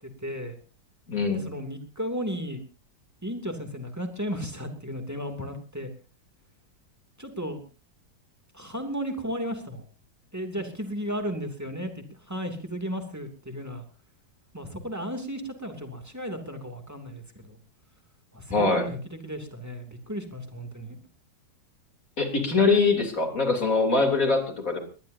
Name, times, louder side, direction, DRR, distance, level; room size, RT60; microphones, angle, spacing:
voice 1, 0.2-0.6 1.3-2.6 3.2-5.9 7.2-7.6 8.5-9.8 10.3-13.8 14.5-17.6 18.3-21.0, equal, 10° right, 4 dB, 2.7 m, -34 dB
voice 2, 1.1-1.5 18.5-18.9 22.2-24.8, left 3 dB, 45° left, 3 dB, 3.9 m, -23 dB
22.0 x 19.5 x 2.8 m, 0.36 s
omnidirectional pair, 2.0 m